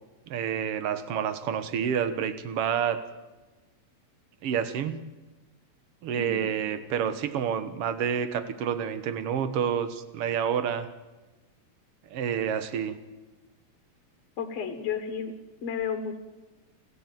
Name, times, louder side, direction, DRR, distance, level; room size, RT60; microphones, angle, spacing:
voice 1, 0.3-3.0 4.4-5.0 6.0-10.9 12.1-13.0, right 8 dB, 55° right, 11 dB, 2.0 m, -29 dB
voice 2, 6.1-6.5 14.4-15.3 15.6-16.2, left 7 dB, 65° left, 7 dB, 2.4 m, -32 dB
28.0 x 15.0 x 9.2 m, 1.2 s
omnidirectional pair, 3.4 m